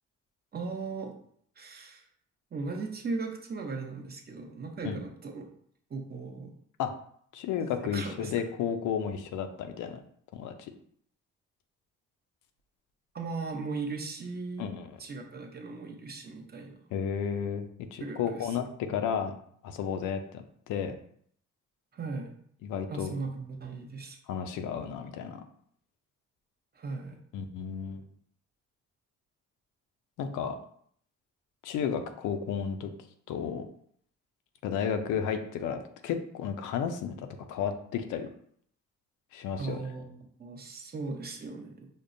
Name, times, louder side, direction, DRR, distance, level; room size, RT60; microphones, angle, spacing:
voice 1, 0.5-1.1 1.6-2.1 2.5-5.5 5.9-6.5 7.9-8.3 13.1-14.7 15.0-16.8 18.0-18.6 21.9-22.3 22.9-24.2 26.7-27.2 39.6-41.9, right 4 dB, 30° right, 2 dB, 0.7 m, -37 dB
voice 2, 7.3-10.0 10.3-10.5 14.6-14.9 16.9-19.3 19.6-20.9 22.6-23.1 24.3-25.4 27.3-28.1 30.2-30.6 31.6-32.9 33.3-33.6 34.6-38.3 39.3-39.8, left 7 dB, 85° left, 8 dB, 0.5 m, -32 dB
5.1 x 2.1 x 2.6 m, 0.64 s
cardioid pair, 90°, 30 cm